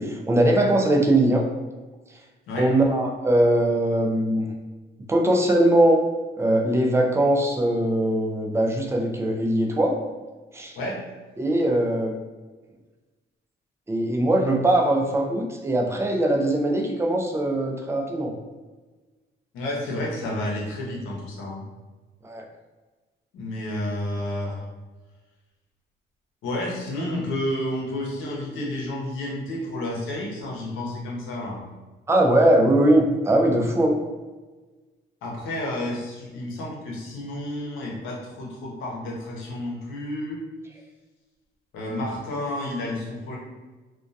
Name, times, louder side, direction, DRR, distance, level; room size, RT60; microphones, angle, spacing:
voice 1, 0.0-1.5 2.6-4.5 5.1-6.0 6.4-10.0 10.5-10.8 11.4-12.2 13.9-18.3 22.2-22.4 32.1-34.0, right 1 dB, 15° right, 1 dB, 0.4 m, -21 dB
voice 2, 19.5-21.6 23.3-24.6 26.4-31.6 35.2-40.4 41.7-43.4, left 1 dB, 90° left, -2 dB, 0.7 m, -30 dB
2.2 x 2.2 x 2.6 m, 1.3 s
cardioid pair, 90°, 20 cm